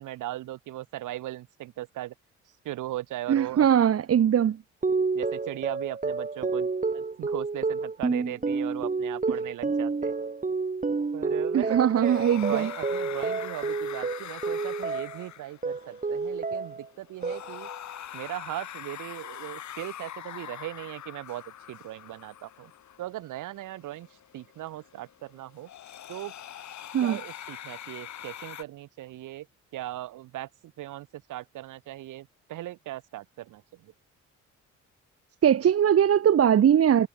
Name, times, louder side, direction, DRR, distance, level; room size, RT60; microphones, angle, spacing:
voice 1, 0.0-2.1 2.6-3.7 5.1-10.1 11.1-17.7 18.1-22.7 23.0-24.1 24.3-25.7 26.1-26.3 27.0-29.5 29.7-33.9, right 15 dB, 85° right, 5.5 m, -38 dB
voice 2, 3.3-4.6 11.5-12.7 26.9-27.2 35.4-37.1, right 9 dB, 50° right, 1.4 m, -21 dB
sound 1, 4.8-15.3 15.6-16.9 17.2-17.8, right 4 dB, 25° right, 4.5 m, -30 dB
sound 2, 11.8-28.6, left 11 dB, 65° left, 3.6 m, -43 dB
cardioid pair, 90°, 30 cm